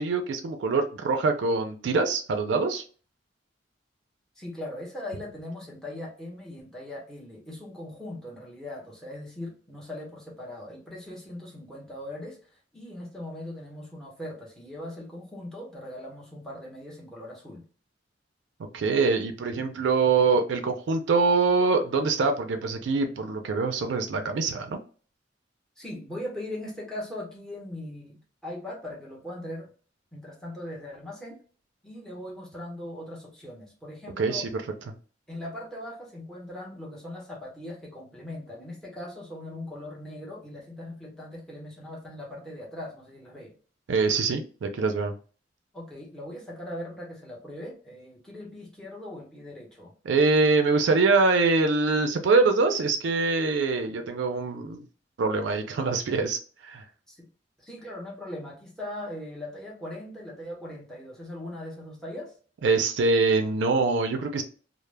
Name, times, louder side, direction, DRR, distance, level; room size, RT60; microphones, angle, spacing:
voice 1, 0.0-2.8 18.7-24.8 34.2-34.5 34.9-35.0 43.9-45.1 50.1-54.8 55.2-56.8 62.6-64.4, right 4 dB, 80° right, 6 dB, 0.4 m, -24 dB
voice 2, 4.4-17.6 25.8-29.7 30.1-31.4 31.8-34.5 35.3-43.5 45.7-49.9 57.1-57.3 57.6-62.3, left 1 dB, 5° left, -3 dB, 0.8 m, -40 dB
2.1 x 2.0 x 3.2 m, 0.40 s
head